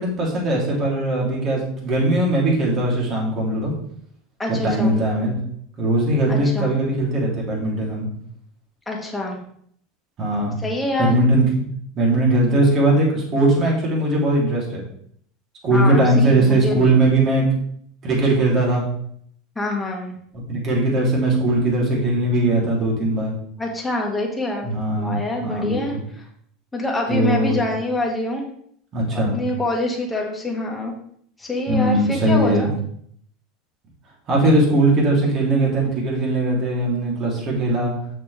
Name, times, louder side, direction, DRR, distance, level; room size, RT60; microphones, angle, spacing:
voice 1, 0.0-3.7 4.6-5.4 5.8-8.1 10.2-10.6 11.0-14.8 15.6-17.5 18.0-18.8 20.5-23.3 24.6-25.8 27.1-27.6 28.9-29.4 31.7-32.7 34.3-37.9, right 2 dB, 40° right, -2 dB, 3.3 m, -19 dB
voice 2, 4.4-4.9 6.3-6.7 8.9-9.4 10.6-11.2 15.7-16.9 19.6-20.1 23.6-24.7 25.0-26.3 26.7-28.5 29.1-30.9 31.4-32.7, left 2 dB, 10° left, -1 dB, 1.9 m, -25 dB
7.1 x 6.7 x 3.5 m, 0.65 s
supercardioid pair, 125°, 0 cm